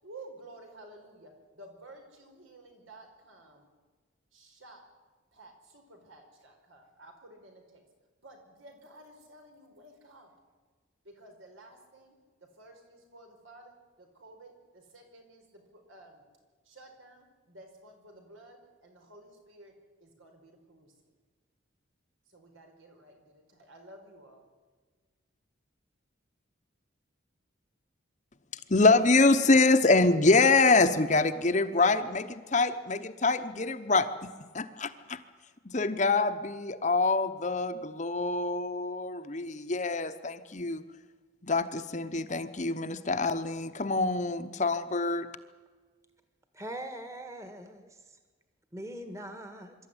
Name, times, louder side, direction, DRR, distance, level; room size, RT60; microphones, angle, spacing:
voice 1, 0.0-3.6 4.3-4.8 5.3-7.8 8.2-10.3 11.0-16.2 16.6-20.9 22.3-24.4, right 2 dB, 80° right, 5.0 m, -53 dB
voice 2, 28.7-34.1 34.5-35.2 35.7-40.8 41.4-45.3, left 3 dB, 35° left, 1.0 m, -25 dB
voice 3, 46.5-47.9 48.7-49.7, right 1 dB, 15° right, 1.6 m, -41 dB
25.0 x 13.0 x 9.8 m
head